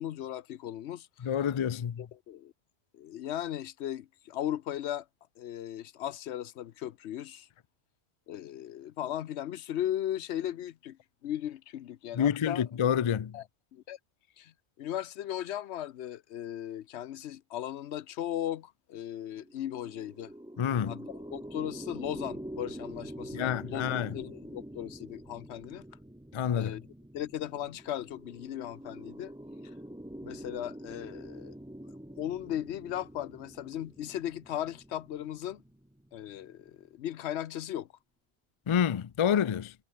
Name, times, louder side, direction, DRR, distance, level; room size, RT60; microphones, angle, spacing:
voice 1, 0.0-1.3 2.1-2.5 2.9-5.1 5.4-7.5 8.3-12.6 13.3-13.4 13.7-14.0 14.4-14.5 14.8-20.3 20.9-25.8 26.5-26.8 27.1-29.3 30.2-31.5 32.2-35.6 36.1-37.9, left 11 dB, 80° left, 0.9 m, -37 dB
voice 2, 1.2-2.1 12.1-13.4 20.6-21.0 23.3-24.2 26.3-26.8 38.7-39.7, left 8 dB, 55° left, 0.3 m, -28 dB
sound 1, 19.3-36.7, right 1 dB, 5° right, 0.9 m, -46 dB
omnidirectional pair, 1.1 m